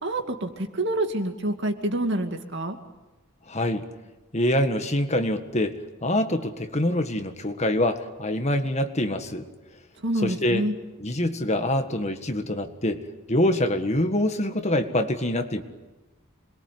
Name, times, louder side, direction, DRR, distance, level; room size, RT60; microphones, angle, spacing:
voice 1, 0.0-2.8 10.0-10.7, right 1 dB, 55° right, 5 dB, 2.5 m, -27 dB
voice 2, 3.5-3.8 4.3-5.8 6.0-9.4 10.2-10.6 11.0-13.0 13.3-15.6, left 1 dB, 30° left, 7 dB, 1.7 m, -25 dB
27.0 x 22.0 x 9.4 m, 1.1 s
head